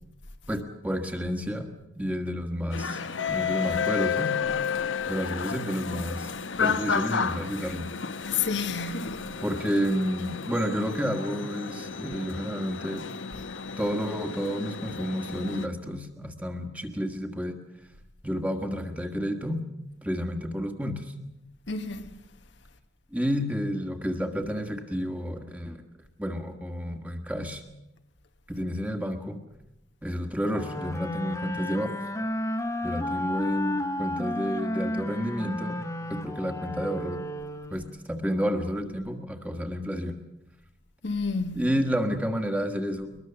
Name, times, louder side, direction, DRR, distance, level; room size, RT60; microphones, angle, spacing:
voice 1, 0.5-4.3 5.1-6.3 6.6-7.9 9.3-13.1 13.8-17.5 18.2-19.6 20.0-21.1 23.1-25.8 26.2-27.6 28.5-29.4 30.0-31.9 32.8-35.8 36.1-37.2 37.7-40.2 41.5-43.2, equal, 10° right, 1.6 m, -30 dB
sound 1, 2.7-15.7, left 6 dB, 85° left, 1.0 m, -32 dB
voice 2, 8.2-9.2 21.7-22.1 41.0-41.6, left 5 dB, 70° left, 1.3 m, -30 dB
sound 2, 30.5-38.0, left 1 dB, 15° left, 1.3 m, -32 dB
22.0 x 21.0 x 7.0 m
head